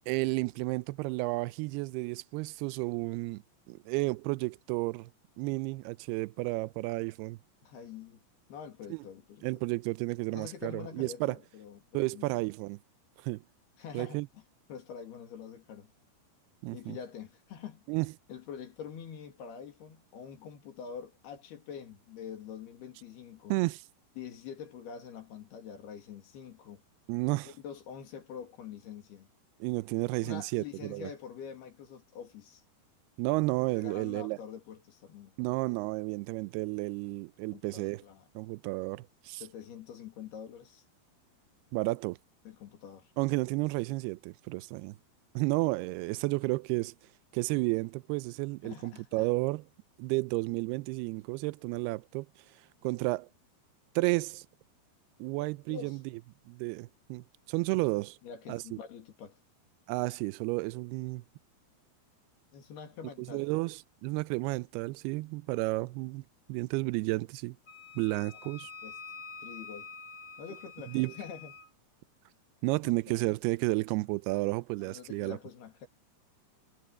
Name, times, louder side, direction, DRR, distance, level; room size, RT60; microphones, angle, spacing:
voice 1, 0.1-5.1 5.4-7.4 8.9-9.0 9.4-11.4 11.9-12.8 13.2-13.4 13.9-14.3 16.6-17.0 17.9-18.1 23.5-23.8 27.1-27.5 29.6-31.1 33.2-34.4 35.4-38.0 38.4-39.4 41.7-42.2 43.2-45.0 45.4-46.9 47.3-49.6 50.0-52.3 52.8-53.3 54.0-54.5 55.2-56.0 56.5-58.2 58.5-58.8 59.9-61.2 63.2-66.2 66.5-67.6 68.0-68.7 70.9-71.1 72.6-75.4, right 23 dB, 80° right, 2.5 m, -32 dB
voice 2, 7.6-8.2 8.5-9.5 10.3-12.4 13.8-14.4 14.7-15.9 16.7-17.9 18.3-23.5 24.2-26.8 27.4-29.3 30.2-32.6 33.8-35.5 37.5-38.3 39.4-40.8 42.4-43.1 48.6-49.3 55.7-56.0 58.2-59.4 62.5-63.5 68.3-68.4 68.8-69.0 69.4-69.9 70.4-71.5 72.8-72.9 74.8-75.9, left 7 dB, 70° left, 4.5 m, -45 dB
Wind instrument woodwind instrument, 67.7-71.7, left 5 dB, 45° left, 2.8 m, -47 dB
omnidirectional pair, 4.8 m